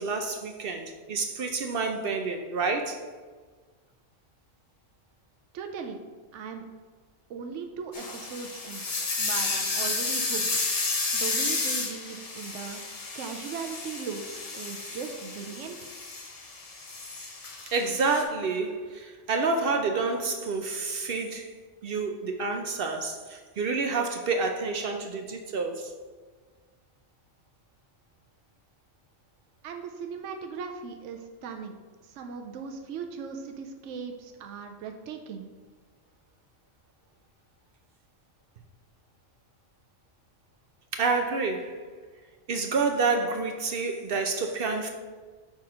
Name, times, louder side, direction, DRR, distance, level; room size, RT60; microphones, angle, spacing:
voice 1, 0.0-3.0 17.7-21.5 21.8-25.9 40.9-41.8 42.5-44.9, right 4 dB, 60° right, 4 dB, 0.7 m, -28 dB
voice 2, 5.5-6.0 6.3-6.6 7.3-8.9 9.2-10.5 11.1-12.8 13.1-15.9 29.6-31.7 32.0-35.5, right 6 dB, 80° right, 4 dB, 0.9 m, -38 dB
sound 1, 7.9-18.2, left 3 dB, 35° left, 0.7 m, -32 dB
6.1 x 4.3 x 4.9 m, 1.5 s
omnidirectional pair, 1.2 m